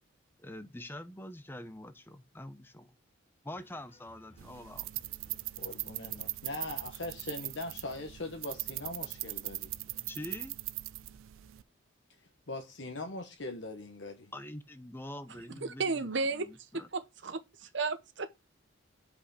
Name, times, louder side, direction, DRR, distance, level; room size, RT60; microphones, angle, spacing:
voice 1, 0.4-3.0 3.4-4.9 10.1-10.5 14.3-16.9, left 1 dB, 10° left, 0.6 m, -45 dB
sound 1, 3.6-10.5, left 1 dB, 30° left, 1.1 m, -62 dB
sound 2, 4.4-11.6, right 19 dB, 75° right, 0.3 m, -40 dB
voice 2, 5.6-9.7 12.2-14.3, left 2 dB, 60° left, 1.0 m, -41 dB
voice 3, 15.6-18.3, right 4 dB, 60° right, 0.8 m, -34 dB
5.6 x 5.1 x 6.5 m
head